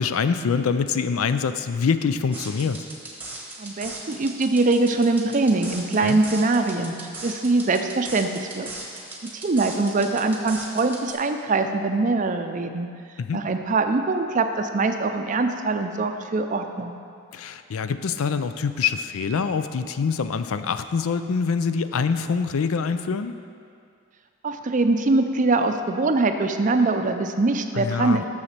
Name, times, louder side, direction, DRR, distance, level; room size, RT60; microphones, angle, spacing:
voice 1, 0.0-2.8 6.0-6.2 13.2-13.4 17.3-23.3 27.7-28.2, left 5 dB, 80° left, 11 dB, 0.4 m, -25 dB
sound 1, 2.3-11.1, right 2 dB, 10° right, 1.1 m, -38 dB
voice 2, 3.6-6.9 7.2-8.7 9.2-12.9 13.3-16.9 24.4-28.2, right 3 dB, 35° right, 7 dB, 0.5 m, -23 dB
7.1 x 6.4 x 6.6 m, 2.4 s
head